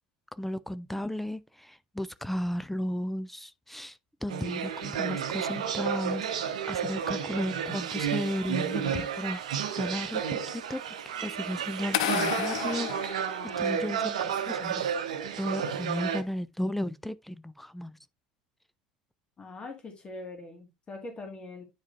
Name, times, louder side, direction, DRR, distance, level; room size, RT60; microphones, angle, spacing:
voice 1, 0.3-9.4 9.8-10.8 11.2-14.9 15.3-18.0, left 1 dB, 5° left, 0.4 m, -34 dB
sound 1, 4.3-16.2, right 8 dB, 70° right, 0.8 m, -32 dB
sound 2, 11.9-14.0, left 13 dB, 65° left, 0.4 m, -32 dB
voice 2, 19.4-21.6, left 2 dB, 25° left, 1.8 m, -42 dB
9.4 x 4.8 x 2.5 m
figure-of-eight pair, 70°, 4 cm